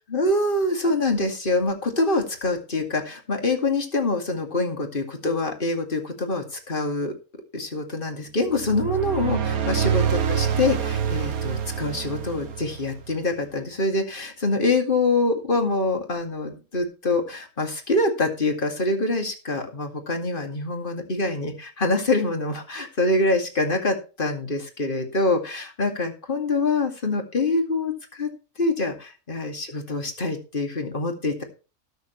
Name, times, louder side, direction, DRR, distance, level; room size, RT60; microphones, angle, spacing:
voice 1, 0.1-7.1 7.5-28.3 28.6-31.4, left 2 dB, 35° left, 4 dB, 2.4 m, -25 dB
sound 1, 8.5-13.2, right 8 dB, 70° right, 1.6 m, -26 dB
19.5 x 6.7 x 3.2 m, 0.33 s
omnidirectional pair, 1.6 m